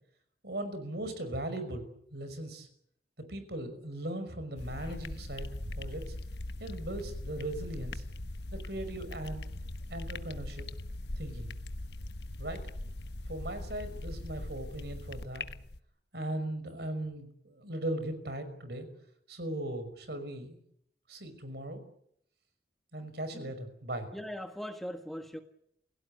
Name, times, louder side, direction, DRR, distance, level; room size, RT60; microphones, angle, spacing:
voice 1, 0.4-2.7 3.2-5.5 5.8-6.0 6.6-8.0 8.5-9.4 9.9-10.7 11.2-11.5 12.4-12.6 13.3-15.4 16.1-18.9 19.3-20.6 21.1-21.8 22.9-24.1, right 1 dB, 65° right, 5.7 m, -38 dB
sound 1, 4.6-15.8, left 1 dB, 70° left, 1.2 m, -40 dB
voice 2, 24.1-25.4, equal, ahead, 1.6 m, -40 dB
28.5 x 17.5 x 9.6 m
head